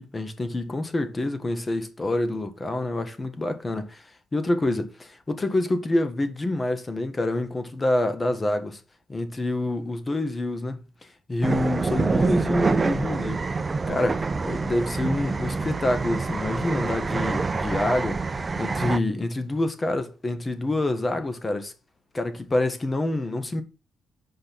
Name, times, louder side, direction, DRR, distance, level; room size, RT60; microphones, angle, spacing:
voice 1, 0.0-8.8 9.1-10.8 11.3-13.4 13.9-21.7 22.1-23.6, left 2 dB, 25° left, 1.6 m, -27 dB
sound 1, 11.4-19.0, right 4 dB, 30° right, 0.5 m, -26 dB
6.5 x 5.1 x 5.9 m
cardioid pair, 90°, 0 cm